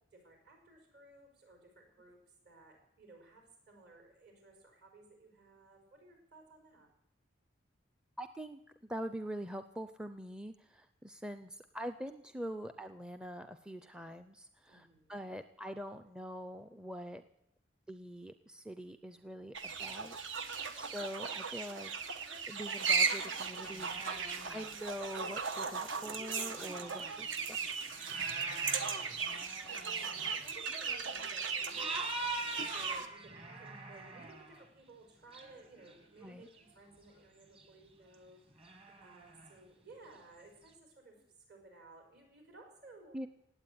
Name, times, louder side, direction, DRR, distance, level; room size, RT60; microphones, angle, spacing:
voice 1, 0.1-6.9 14.7-15.3 28.8-38.7 39.0-43.2, right 2 dB, 55° right, 2 dB, 5.4 m, -58 dB
voice 2, 8.2-17.2 17.9-20.2 20.4-21.9 22.5-27.7 36.2-36.5 43.1-43.3, equal, 5° right, 9 dB, 0.5 m, -44 dB
sound 1, 19.5-33.1, right 5 dB, 70° right, 1.3 m, -37 dB
sound 2, 23.6-24.8 25.5-25.6 26.5-30.6 31.2-31.3 31.7-34.7 35.3-36.7 37.2-37.3 37.6-37.7 38.1-38.2 38.5-39.6 40.7-40.8, right 2 dB, 30° right, 1.9 m, -44 dB
18.0 x 8.4 x 9.4 m, 0.76 s
head